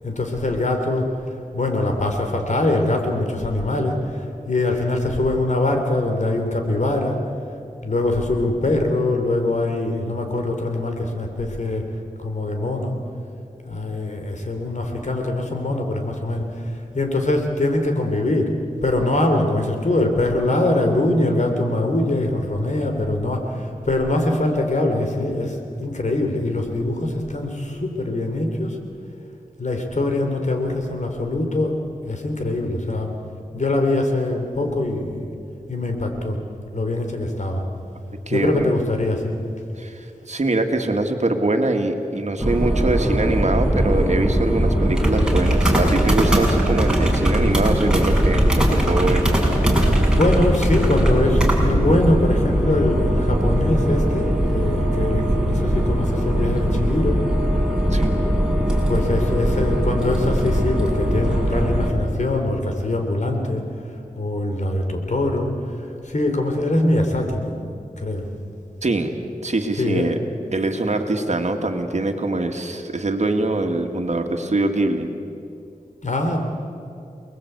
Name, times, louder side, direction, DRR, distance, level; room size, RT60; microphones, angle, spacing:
voice 1, 0.0-1.1 1.5-7.2 7.8-11.9 12.2-13.0 13.6-18.5 18.8-28.8 29.6-33.1 33.5-35.3 35.7-36.4 36.7-37.6 38.3-39.4 50.1-57.2 58.9-63.6 64.2-67.6 68.0-68.3 69.7-70.2 76.0-76.4, left 2 dB, 60° left, 4 dB, 3.8 m, -23 dB
voice 2, 38.3-38.8 39.8-49.3 57.9-58.1 68.8-69.1 69.4-70.2 70.5-75.1, right 2 dB, 55° right, 5 dB, 2.3 m, -23 dB
sound 1, 42.4-61.9, equal, 5° right, 6.1 m, -20 dB
29.0 x 20.5 x 8.3 m, 2.6 s
wide cardioid pair, 55°, 14 cm